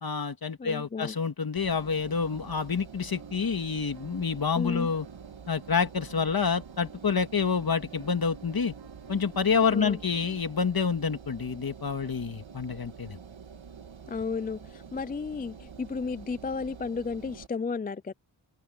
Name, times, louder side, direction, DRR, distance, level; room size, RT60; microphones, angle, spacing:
voice 1, 0.0-5.1 5.5-8.7 9.1-13.2, left 5 dB, 50° left, 2.0 m, -28 dB
voice 2, 0.6-1.2 4.5-4.9 9.7-10.0 14.1-18.1, left 4 dB, 20° left, 0.3 m, -33 dB
Engine, 1.6-17.5, right 6 dB, 80° right, 2.3 m, -47 dB
sound 1, 2.9-10.4, right 5 dB, 65° right, 4.0 m, -50 dB
open air
wide cardioid pair, 105°, 46 cm